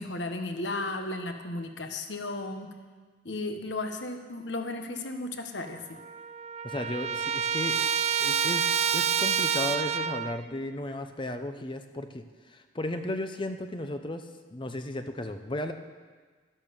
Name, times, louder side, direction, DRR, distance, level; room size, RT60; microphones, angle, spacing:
voice 1, 0.0-2.7 3.2-6.0, left 2 dB, 65° left, 6 dB, 1.3 m, -34 dB
Trumpet, 5.6-5.7 6.0-10.4, right 8 dB, 35° right, 0.3 m, -28 dB
voice 2, 6.6-7.9 8.2-14.3 14.5-15.7, left 1 dB, 25° left, 7 dB, 0.7 m, -35 dB
12.5 x 11.0 x 7.0 m, 1.4 s
head